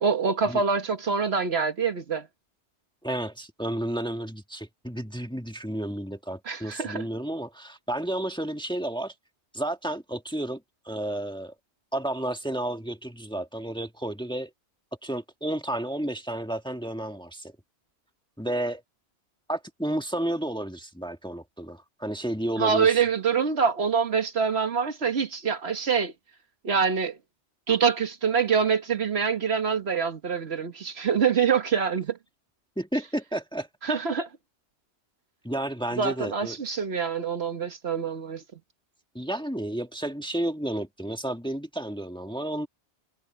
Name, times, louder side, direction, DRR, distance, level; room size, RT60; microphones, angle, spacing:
voice 1, 0.0-2.3 6.5-7.0 22.6-26.1 26.6-27.2 27.7-32.2 33.8-34.3 36.0-38.4, right 6 dB, 65° right, 1.5 m, -25 dB
voice 2, 3.0-9.1 9.5-11.5 11.9-14.5 15.0-17.5 18.4-18.8 19.5-22.9 32.8-33.7 35.4-36.6 39.1-42.7, right 1 dB, 5° left, 1.5 m, -31 dB
omnidirectional pair, 1.2 m